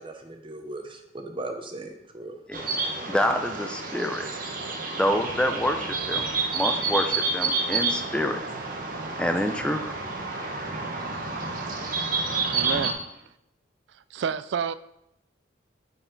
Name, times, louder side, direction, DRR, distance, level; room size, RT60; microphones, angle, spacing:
voice 1, 0.0-2.3, right 2 dB, 25° right, 4 dB, 0.8 m, -38 dB
sound 1, 2.5-12.9, right 4 dB, 45° right, 0.9 m, -29 dB
voice 2, 3.1-4.3 4.9-8.4 9.2-9.9, left 1 dB, 5° left, 5 dB, 0.4 m, -27 dB
voice 3, 12.5-13.0 13.9-14.7, right 7 dB, 70° right, 15 dB, 0.3 m, -30 dB
8.6 x 4.2 x 3.9 m, 0.82 s
head